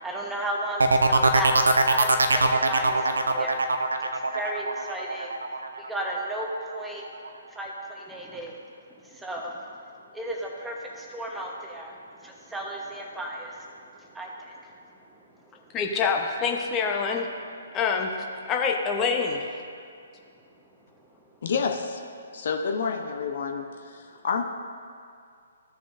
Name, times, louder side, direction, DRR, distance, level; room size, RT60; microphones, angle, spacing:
voice 1, 0.0-3.6 4.0-5.3 5.8-7.1 7.5-8.6 9.0-9.6 10.1-13.7 14.0-14.7, right 1 dB, 5° right, -1 dB, 1.1 m, -34 dB
sound 1, 0.8-6.4 6.8-7.3, right 3 dB, 70° right, 0.6 m, -22 dB
voice 2, 15.7-17.3 17.7-18.1 18.5-19.5, left 5 dB, 20° left, 2 dB, 0.9 m, -25 dB
voice 3, 21.4-22.1 22.3-24.4, left 5 dB, 50° left, 3 dB, 0.7 m, -29 dB
15.0 x 6.6 x 2.6 m, 2.3 s
figure-of-eight pair, 125°, 0 cm